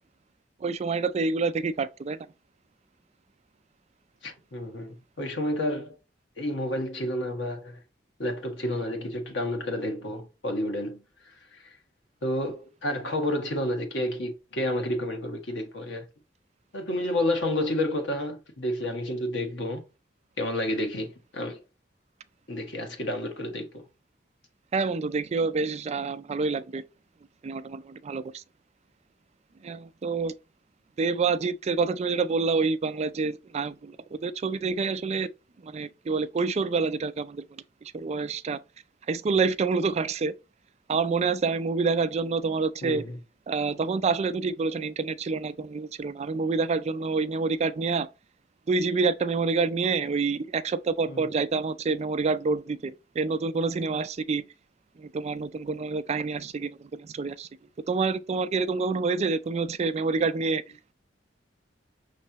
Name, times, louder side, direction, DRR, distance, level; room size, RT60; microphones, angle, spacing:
voice 1, 0.6-2.3 24.7-26.8 27.4-28.4 29.6-30.3 31.0-35.3 35.6-38.6 39.1-40.3 40.9-43.0 43.5-48.1 48.7-54.4 55.0-57.5 57.9-60.6, right 4 dB, 35° right, 0.4 m, -27 dB
voice 2, 4.2-6.0 6.4-7.8 8.2-11.0 11.5-11.7 12.2-16.0 16.7-19.8 20.4-21.6 22.5-23.9 42.8-43.2 51.1-51.3, left 1 dB, 85° left, 1.3 m, -30 dB
5.5 x 3.2 x 2.8 m
head